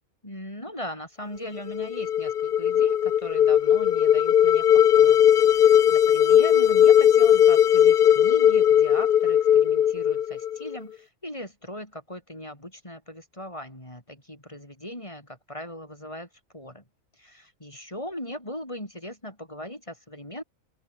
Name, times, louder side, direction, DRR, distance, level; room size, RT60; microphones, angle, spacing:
voice 1, 0.2-16.3 16.5-16.8 17.2-20.4, left 1 dB, 20° left, 5.8 m, -39 dB
sound 1, 1.6-10.8, left 10 dB, 55° left, 0.6 m, -18 dB
open air
omnidirectional pair, 1.4 m